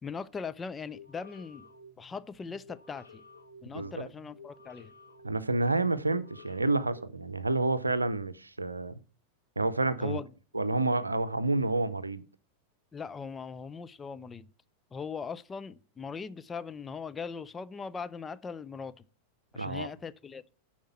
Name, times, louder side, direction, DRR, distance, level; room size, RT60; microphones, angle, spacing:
voice 1, 0.0-1.7 2.0-3.2 3.6-4.9 10.0-10.3 12.9-14.5 14.9-19.0 19.5-20.4, left 5 dB, 15° left, 0.5 m, -40 dB
sound 1, 0.8-7.7, left 2 dB, 80° left, 1.6 m, -54 dB
voice 2, 3.7-4.1 5.2-8.9 9.6-10.2 10.5-12.2 19.6-19.9, right 2 dB, 80° right, 0.6 m, -29 dB
10.0 x 4.4 x 7.1 m
figure-of-eight pair, 90°, 0 cm